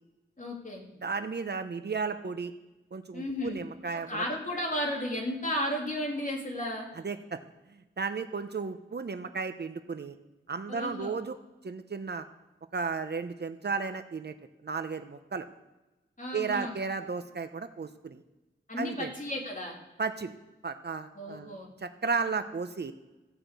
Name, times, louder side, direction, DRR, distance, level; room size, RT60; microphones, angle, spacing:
voice 1, 0.4-0.8 3.1-3.6 4.1-6.9 10.7-11.1 16.2-16.7 18.7-19.7 21.1-21.7, left 1 dB, 40° left, 0 dB, 3.1 m, -33 dB
voice 2, 1.0-2.5 2.9-4.2 7.0-7.4 7.7-10.2 10.5-11.4 11.6-12.3 12.7-14.3 14.6-15.4 16.3-18.2 18.8-19.1 20.0-20.3 20.6-22.9, right 4 dB, 55° right, 9 dB, 0.8 m, -34 dB
15.0 x 6.0 x 8.2 m, 1.0 s
wide cardioid pair, 70°, 21 cm